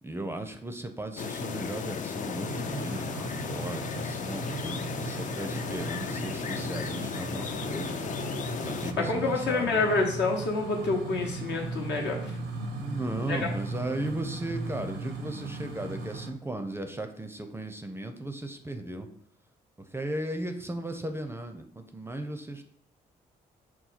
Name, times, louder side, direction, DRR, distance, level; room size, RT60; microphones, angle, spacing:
voice 1, 0.0-8.0 8.6-9.9 12.8-19.1 19.8-22.6, right 1 dB, 10° right, 6 dB, 0.5 m, -36 dB
sound 1, 1.2-8.9, left 6 dB, 45° left, 0.4 m, -35 dB
sound 2, 2.4-16.3, right 3 dB, 80° right, 0.6 m, -37 dB
voice 2, 9.0-12.3 13.3-13.4, left 3 dB, 70° left, 1 dB, 0.9 m, -28 dB
4.2 x 2.2 x 4.0 m, 0.63 s
supercardioid pair, 55°, 19 cm